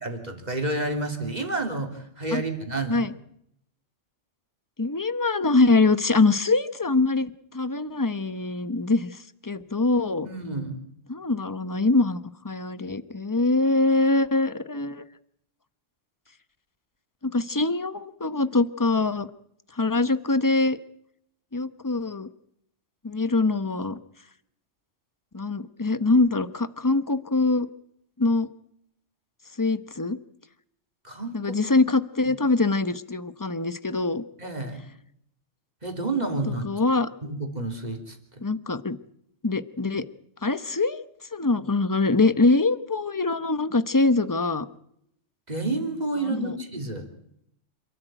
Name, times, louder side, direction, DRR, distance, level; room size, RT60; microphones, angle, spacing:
voice 1, 0.0-3.1 10.2-10.8 31.0-31.5 34.4-34.8 35.8-36.7 37.2-38.2 45.5-47.1, right 2 dB, 35° right, 4 dB, 3.5 m, -30 dB
voice 2, 4.8-9.1 9.4-10.3 11.1-15.0 17.2-19.3 19.8-20.8 21.5-22.3 23.0-24.0 25.3-27.7 28.2-28.5 29.6-30.2 31.3-34.2 36.6-37.1 38.4-39.0 39.4-40.0 40.4-41.0 41.3-44.7 46.3-46.6, left 3 dB, 20° left, 13 dB, 0.9 m, -23 dB
28.0 x 13.5 x 9.1 m, 0.74 s
omnidirectional pair, 1.3 m